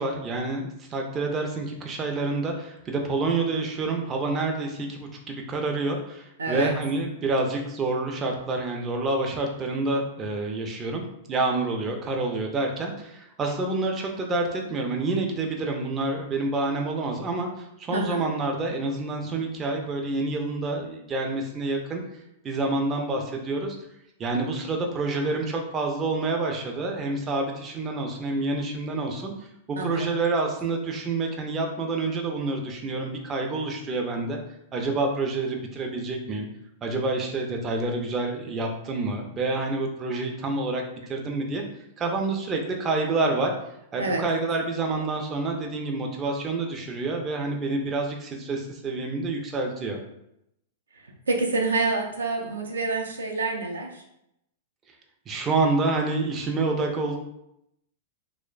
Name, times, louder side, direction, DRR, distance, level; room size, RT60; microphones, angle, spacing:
voice 1, 0.0-22.0 22.4-23.8 24.2-29.3 29.7-34.4 34.7-36.5 36.8-41.6 42.0-43.5 43.9-50.0 55.3-57.2, right 3 dB, 25° right, 2 dB, 0.4 m, -28 dB
voice 2, 6.4-6.7 17.9-18.2 29.8-30.1 44.0-44.2 50.9-54.0, right 3 dB, 80° right, 0 dB, 0.5 m, -27 dB
3.0 x 2.1 x 2.3 m, 0.80 s
figure-of-eight pair, 100°, 0 cm